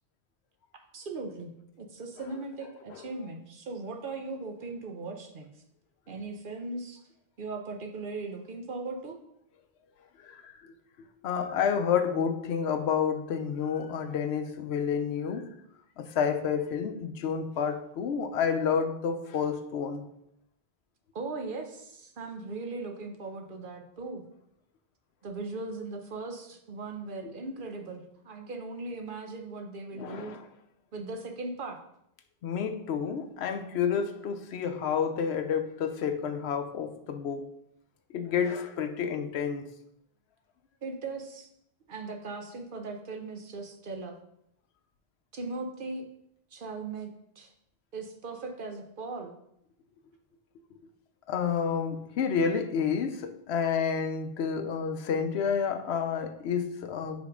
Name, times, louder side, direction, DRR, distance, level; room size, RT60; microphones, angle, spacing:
voice 1, 0.7-1.5 1.8-5.5 6.1-7.0 7.4-9.2 21.1-24.2 25.2-30.4 30.9-31.8 40.8-41.5 41.9-44.1 45.3-46.0 46.5-47.1 47.4-47.5 47.9-49.4, right 3 dB, 60° right, 4 dB, 0.9 m, -38 dB
voice 2, 10.2-10.7 11.2-15.5 16.0-20.0 29.9-30.5 32.4-37.5 38.1-39.7 51.3-57.2, left 7 dB, 90° left, 8 dB, 0.9 m, -30 dB
5.2 x 3.7 x 5.0 m, 0.75 s
omnidirectional pair, 1.1 m